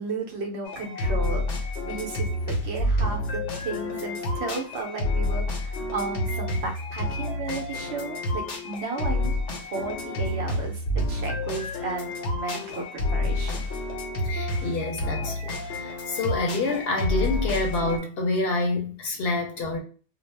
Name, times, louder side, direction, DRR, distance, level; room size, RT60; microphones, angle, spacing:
voice 1, 0.0-1.5 1.9-9.3 9.7-10.8 11.1-13.6, right 4 dB, 70° right, 0.9 m, -34 dB
sound 1, 0.7-18.0, left 1 dB, 85° left, 1.0 m, -29 dB
voice 2, 14.3-15.5 15.8-19.8, left 2 dB, 65° left, 0.8 m, -27 dB
2.4 x 2.0 x 3.1 m
omnidirectional pair, 1.2 m